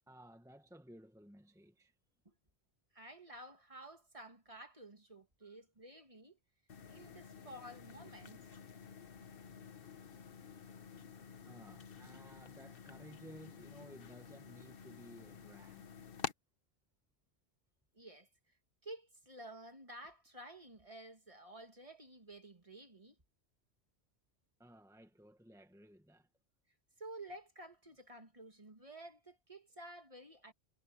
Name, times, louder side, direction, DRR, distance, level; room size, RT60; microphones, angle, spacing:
voice 1, 0.1-1.9 5.4-5.6 11.5-15.9 24.6-26.3, equal, 5° right, 1.4 m, -57 dB
voice 2, 2.9-6.4 6.9-8.5 17.9-18.3 18.8-23.2 27.0-30.5, right 1 dB, 30° right, 2.4 m, -52 dB
sound 1, 6.7-16.3, left 6 dB, 60° left, 1.2 m, -50 dB
omnidirectional pair, 1.1 m